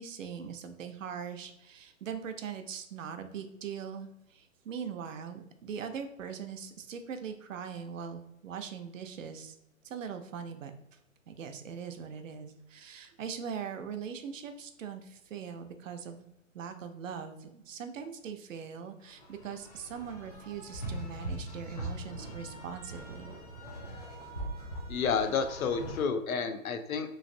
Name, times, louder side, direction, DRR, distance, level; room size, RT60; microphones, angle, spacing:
voice 1, 0.0-9.6 9.8-10.7 11.3-16.3 16.5-23.4, right 7 dB, 70° right, 7 dB, 0.5 m, -41 dB
sound 1, 19.0-26.0, right 1 dB, 30° left, 0.5 m, -41 dB
voice 2, 24.9-27.1, left 5 dB, 90° left, 8 dB, 0.6 m, -30 dB
3.1 x 2.5 x 2.6 m, 0.82 s
hypercardioid pair, 165°, 40 cm